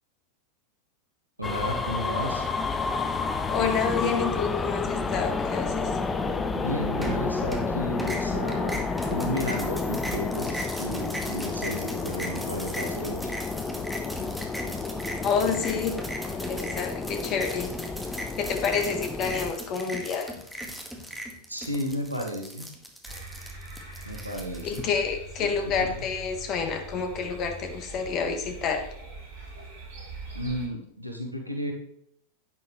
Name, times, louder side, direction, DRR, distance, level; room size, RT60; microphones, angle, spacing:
sound 1, 1.4-19.5, left 4 dB, 15° left, 0.7 m, -30 dB
voice 1, 1.4-2.4 6.5-8.8 9.1-13.2 21.5-22.7 24.0-24.8 25.4-25.5 25.8-25.9 30.3-31.7, equal, 85° right, 2 dB, 1.5 m, -33 dB
voice 2, 3.5-6.0 15.2-16.0 16.3-17.7 18.4-20.3 24.6-28.9, left 6 dB, 35° left, 6 dB, 1.5 m, -28 dB
sound 2, 7.0-7.7 8.0-24.8, equal, ahead, 1.8 m, -38 dB
sound 3, 23.0-30.7, right 2 dB, 50° right, 3.7 m, -42 dB
10.5 x 9.3 x 3.2 m, 0.71 s
figure-of-eight pair, 90°, 0 cm